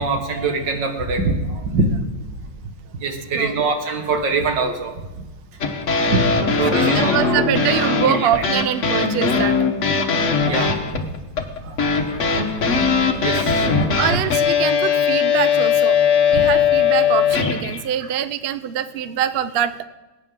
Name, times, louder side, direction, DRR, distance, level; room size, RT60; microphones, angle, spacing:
voice 1, 0.0-1.9 3.0-4.9 6.1-6.2 6.6-7.2 8.1-8.3 10.4-10.7 11.6-12.8 13.2-13.9 16.3-16.4, right 3 dB, 90° right, 4 dB, 2.3 m, -23 dB
sound 1, 5.6-17.8, left 6 dB, 45° left, 1.4 m, -19 dB
voice 2, 6.7-9.6 14.0-16.0 16.3-19.8, right 10 dB, 65° right, 13 dB, 0.5 m, -24 dB
20.5 x 9.5 x 3.7 m, 1.1 s
omnidirectional pair, 1.9 m